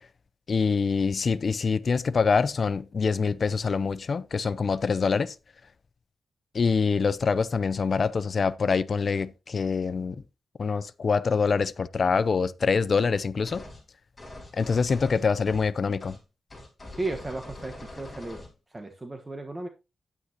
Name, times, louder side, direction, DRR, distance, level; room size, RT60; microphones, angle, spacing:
voice 1, 0.5-5.3 6.5-10.2 10.6-13.6 14.5-16.2, left 5 dB, 50° left, 0.5 m, -25 dB
sound 1, 13.5-13.8 14.2-15.7 16.0-16.2 16.5-18.5, left 2 dB, 20° left, 5.9 m, -43 dB
voice 2, 16.9-18.4 18.7-19.7, right 2 dB, 25° right, 1.2 m, -34 dB
9.7 x 9.1 x 2.8 m
wide cardioid pair, 105°, 0 cm